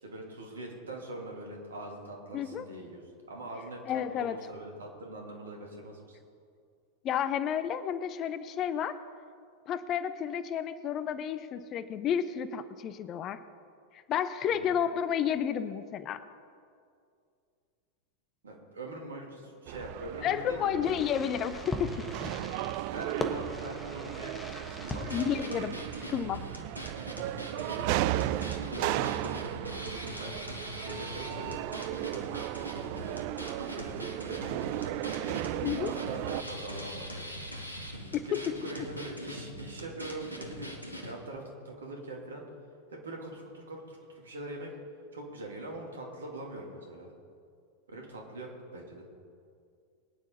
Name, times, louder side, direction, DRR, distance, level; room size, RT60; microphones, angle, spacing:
voice 1, 0.0-3.0 3.3-6.2 14.5-14.7 18.4-21.0 22.9-25.1 27.4-32.0 32.9-37.3 38.2-40.8 41.0-42.4 42.9-44.7 45.1-47.1 47.9-49.1, right 1 dB, 70° right, 0 dB, 2.9 m, -43 dB
voice 2, 2.3-2.6 3.9-4.4 7.0-9.0 9.7-13.4 14.1-16.2 20.2-22.0 25.1-25.7 26.1-26.4 35.6-36.0 38.1-38.5, left 9 dB, 30° left, 13 dB, 0.7 m, -31 dB
sound 1, 19.7-36.4, right 15 dB, 45° right, 0.4 m, -35 dB
Fireworks, 20.8-26.4, left 2 dB, 15° left, 1.4 m, -40 dB
sound 2, 24.8-41.1, equal, 90° right, 1.7 m, -42 dB
23.0 x 9.7 x 4.1 m, 2.3 s
figure-of-eight pair, 90°, 0 cm